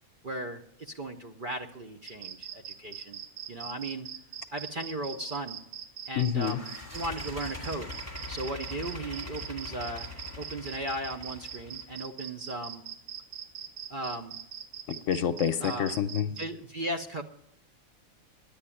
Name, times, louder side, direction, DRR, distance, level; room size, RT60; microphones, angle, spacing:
voice 1, 0.2-3.2 3.5-4.1 4.5-5.6 6.1-7.9 8.3-10.1 10.4-12.8 13.9-14.4 15.6-16.0 16.4-17.2, right 1 dB, 45° right, 6 dB, 0.7 m, -36 dB
sound 1, 2.1-16.5, right 8 dB, 75° right, 1.3 m, -41 dB
voice 2, 6.2-6.6 14.9-16.3, left 9 dB, 65° left, 11 dB, 1.0 m, -28 dB
sound 2, 6.4-12.0, left 3 dB, 10° right, 1.9 m, -42 dB
10.0 x 8.7 x 9.9 m, 0.75 s
omnidirectional pair, 1.5 m